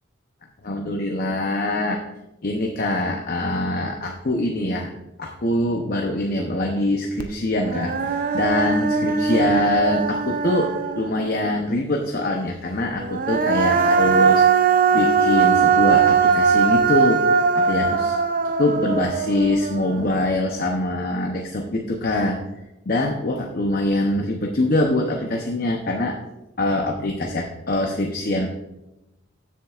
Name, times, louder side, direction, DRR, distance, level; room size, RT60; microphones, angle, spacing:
voice 1, 0.6-2.0 2.4-4.9 5.2-18.2 18.4-22.4 22.9-26.2 26.6-28.5, left 1 dB, 45° left, 2 dB, 0.7 m, -24 dB
Human voice, 7.2-7.3 7.6-11.3 13.0-20.2, right 5 dB, 40° right, 0.5 m, -20 dB
13.5 x 7.3 x 2.4 m, 0.93 s
head